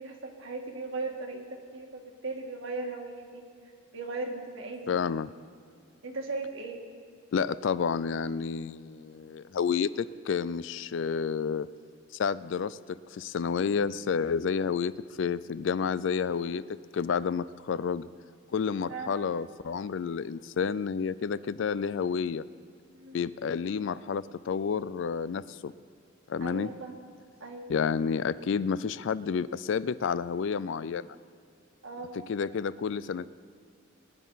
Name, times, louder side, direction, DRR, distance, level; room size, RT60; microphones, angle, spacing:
voice 1, 0.0-3.5 3.9-5.0 6.0-6.8 18.9-19.1 22.9-23.2 26.4-26.9 27.4-27.7 31.8-32.1, right 3 dB, 70° right, 2 dB, 1.8 m, -37 dB
voice 2, 4.9-5.3 7.3-11.7 12.1-14.9 15.2-16.6 16.9-18.1 18.5-22.4 23.1-25.7 26.3-26.7 27.7-31.2 32.3-33.3, left 6 dB, 60° left, 17 dB, 0.3 m, -30 dB
21.5 x 10.5 x 4.0 m, 2.4 s
head